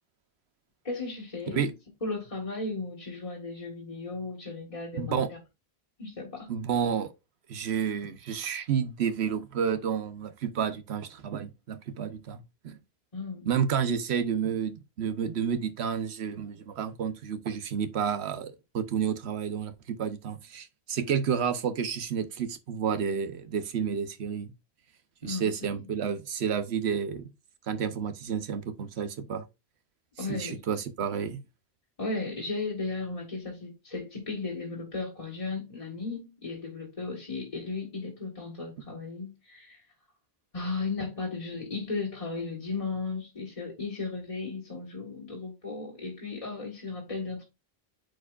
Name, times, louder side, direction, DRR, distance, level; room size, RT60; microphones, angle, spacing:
voice 1, 0.8-1.7 2.0-5.2 6.0-6.5 13.1-13.5 25.2-25.9 30.2-30.6 32.0-39.8 40.5-47.5, left 3 dB, 35° left, 1.7 m, -35 dB
voice 2, 5.0-5.3 6.5-7.1 7.5-12.8 13.5-24.5 25.2-27.3 27.7-29.4 30.3-31.4, right 7 dB, 85° right, 1.1 m, -30 dB
9.0 x 4.7 x 2.4 m
omnidirectional pair, 1.1 m